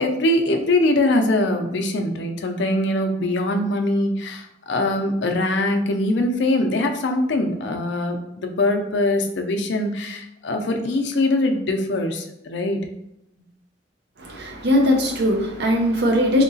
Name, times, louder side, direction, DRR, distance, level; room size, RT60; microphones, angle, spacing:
voice 1, 0.0-12.8, left 1 dB, 70° left, 4 dB, 0.5 m, -22 dB
voice 2, 14.2-16.4, left 1 dB, 65° right, 1 dB, 0.6 m, -20 dB
3.7 x 2.8 x 2.7 m, 0.85 s
head